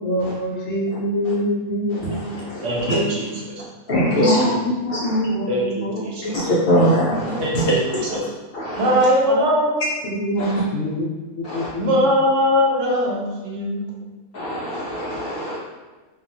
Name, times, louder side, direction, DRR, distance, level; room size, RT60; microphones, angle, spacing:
voice 1, 0.0-2.5 4.1-6.5 7.3-7.4 9.3-9.4 10.0-11.0 11.4-12.0, equal, 75° left, -2 dB, 1.0 m, -25 dB
voice 2, 1.9-3.0 3.9-4.4 4.9-5.1 6.2-8.2 8.5-9.0 10.4-10.5 11.4-11.7 14.3-15.6, equal, 55° left, -6 dB, 0.7 m, -23 dB
voice 3, 2.6-3.6 4.1-4.6 5.5-6.4 7.4-8.2 8.8-9.8 11.8-13.9, equal, 65° right, -3 dB, 0.9 m, -21 dB
2.8 x 2.3 x 2.6 m, 1.3 s
omnidirectional pair, 1.4 m